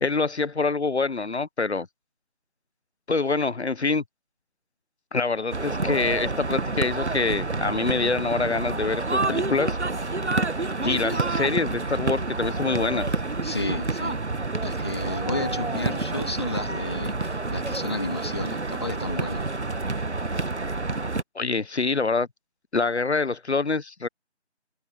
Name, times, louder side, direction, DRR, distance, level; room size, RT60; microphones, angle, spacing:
voice 1, 0.0-1.9 3.1-4.0 5.1-9.8 10.8-13.1 21.3-22.3 22.7-24.1, left 4 dB, 65° left, 0.8 m, -25 dB
sound 1, 5.5-21.2, right 3 dB, 70° right, 1.4 m, -28 dB
voice 2, 10.8-11.6 13.4-14.2 14.6-19.4, left 2 dB, 20° left, 2.7 m, -33 dB
figure-of-eight pair, 170°, 35 cm